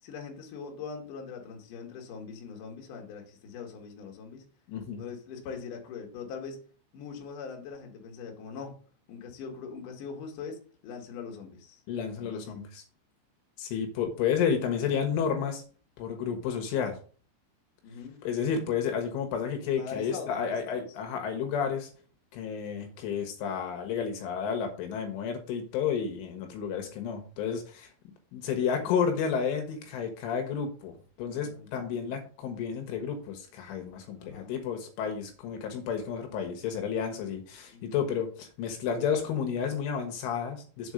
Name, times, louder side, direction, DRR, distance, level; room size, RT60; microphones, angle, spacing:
voice 1, 0.0-4.4 5.0-6.6 6.9-8.8 9.1-11.8 12.2-12.6 17.8-18.2 19.8-20.9 28.8-29.0 31.2-31.7 32.0-32.2 34.2-34.5 37.7-38.0, left 5 dB, 55° left, 1 dB, 2.5 m, -42 dB
voice 2, 4.7-5.0 11.9-12.8 13.6-15.6 16.0-17.0 18.2-21.9 22.3-27.9 28.3-40.9, left 7 dB, 75° left, 5 dB, 3.5 m, -31 dB
7.4 x 4.4 x 6.4 m, 0.40 s
omnidirectional pair, 5.9 m